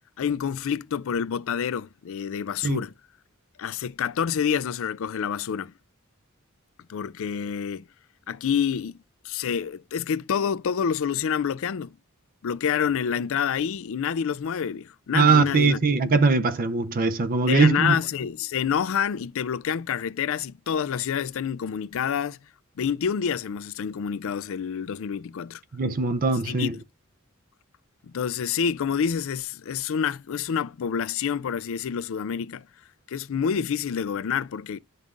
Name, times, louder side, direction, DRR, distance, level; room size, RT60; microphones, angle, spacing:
voice 1, 0.2-2.9 3.6-5.7 6.9-7.8 8.3-8.9 9.2-11.9 12.4-15.8 17.5-22.4 22.8-25.6 26.4-26.7 28.0-32.6 33.1-34.8, left 7 dB, 65° left, 0.4 m, -27 dB
voice 2, 15.1-18.0 25.7-26.7, right 4 dB, 40° right, 0.5 m, -21 dB
11.0 x 5.4 x 2.5 m
head